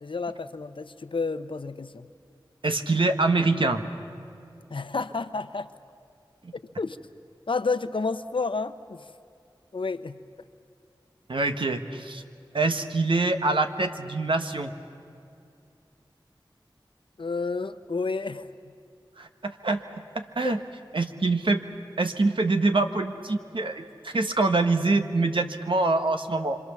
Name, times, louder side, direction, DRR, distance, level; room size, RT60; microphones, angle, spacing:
voice 1, 0.0-2.1 4.7-5.7 6.5-7.0 7.5-9.0 9.7-10.2 17.2-18.5 20.4-20.6, left 4 dB, 75° left, 11 dB, 0.8 m, -30 dB
voice 2, 2.6-3.9 6.4-6.5 11.3-12.2 12.5-14.7 19.2-20.6 20.9-21.6 22.0-26.6, right 3 dB, 75° right, 6 dB, 1.4 m, -25 dB
26.0 x 25.5 x 7.1 m, 2.5 s
wide cardioid pair, 45°, 9 cm